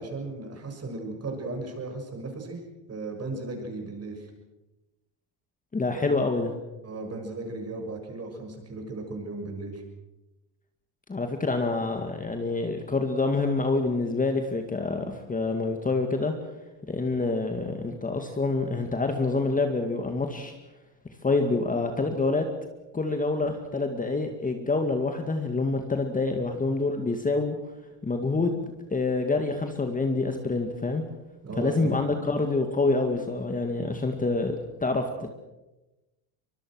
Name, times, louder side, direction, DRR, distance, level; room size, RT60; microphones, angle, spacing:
voice 1, 0.0-2.6 2.9-4.3 5.9-6.2 6.8-9.8 31.4-31.9, right 3 dB, 30° right, 4 dB, 7.1 m, -36 dB
voice 2, 5.7-6.6 11.1-16.3 16.9-20.5 21.2-22.4 22.9-27.6 28.0-31.0 31.6-35.0, left 3 dB, 15° left, 5 dB, 2.1 m, -27 dB
24.5 x 22.5 x 6.4 m, 1.0 s
cardioid pair, 120°, 48 cm